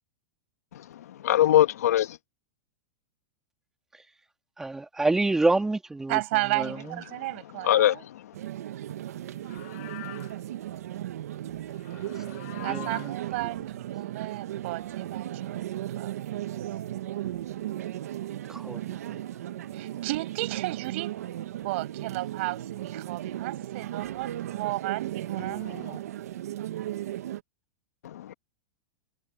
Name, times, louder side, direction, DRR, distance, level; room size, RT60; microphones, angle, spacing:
voice 1, 1.2-2.2 7.6-8.0 25.6-26.0 28.0-28.3, left 12 dB, 90° left, 1.7 m, -22 dB
voice 2, 4.6-6.2 6.5-7.0 12.3-13.1 18.5-18.8 19.0-19.2, right 2 dB, 5° right, 2.3 m, -28 dB
voice 3, 6.1-8.1 12.6-15.6 16.0-16.4 19.7-21.1 21.6-26.1, right 21 dB, 55° right, 5.9 m, -33 dB
sound 1, 8.3-27.4, right 12 dB, 85° right, 1.4 m, -36 dB
Livestock farm animals working animals, 9.3-10.4 11.7-13.2, left 19 dB, 55° left, 6.0 m, -44 dB
supercardioid pair, 155°, 8 cm